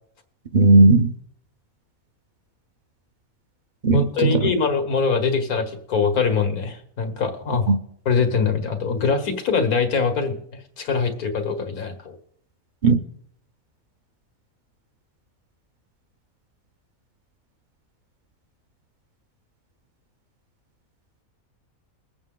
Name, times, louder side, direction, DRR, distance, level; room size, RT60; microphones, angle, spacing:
voice 1, 0.5-1.1 3.8-4.5 7.7-7.8 12.8-13.0, right 3 dB, 45° right, 0.7 m, -15 dB
voice 2, 3.9-7.7 8.1-12.2, left 5 dB, 85° left, 2.0 m, -23 dB
21.5 x 8.1 x 3.8 m
omnidirectional pair, 1.5 m